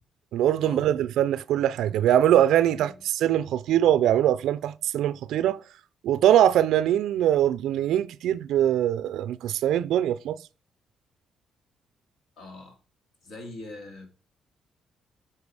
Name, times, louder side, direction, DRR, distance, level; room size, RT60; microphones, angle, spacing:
voice 1, 0.3-5.6 6.0-10.4, right 11 dB, 80° right, 0.3 m, -22 dB
voice 2, 12.4-12.8 13.2-14.1, left 2 dB, 70° left, 2.4 m, -42 dB
8.6 x 4.6 x 4.7 m
cardioid pair, 90°, 0 cm